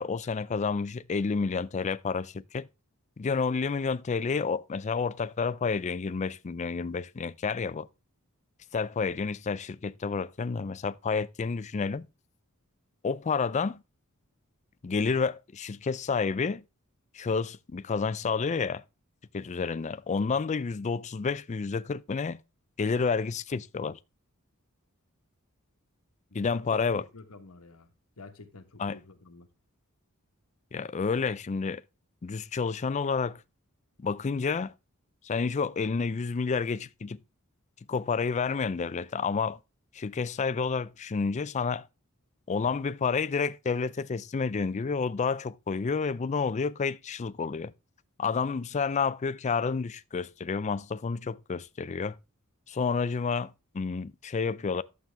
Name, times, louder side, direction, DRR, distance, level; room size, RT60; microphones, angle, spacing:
voice 1, 0.0-2.7 3.2-7.9 8.7-12.1 13.0-13.8 14.8-16.6 17.1-18.8 19.3-22.4 22.8-24.0 26.3-27.0 28.8-29.0 30.7-31.8 32.2-33.4 34.0-34.7 35.2-37.2 37.9-39.6 39.9-41.9 42.5-47.7 48.2-52.2 52.7-54.8, left 5 dB, 35° left, 0.4 m, -30 dB
voice 2, 26.3-29.5, left 2 dB, 85° left, 1.3 m, -49 dB
11.5 x 7.6 x 3.4 m
head